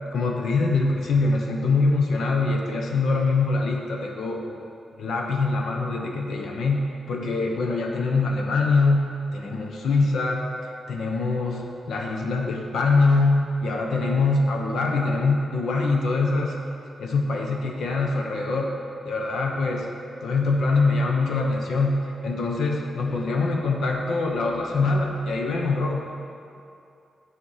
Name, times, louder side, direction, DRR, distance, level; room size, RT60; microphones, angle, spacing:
voice 1, 0.1-4.6 5.0-10.5 10.9-16.5 17.0-18.7 19.0-19.9 20.2-26.1, left 3 dB, 75° left, 1 dB, 1.0 m, -24 dB
9.6 x 6.2 x 5.7 m, 2.6 s
wide cardioid pair, 165°, 0 cm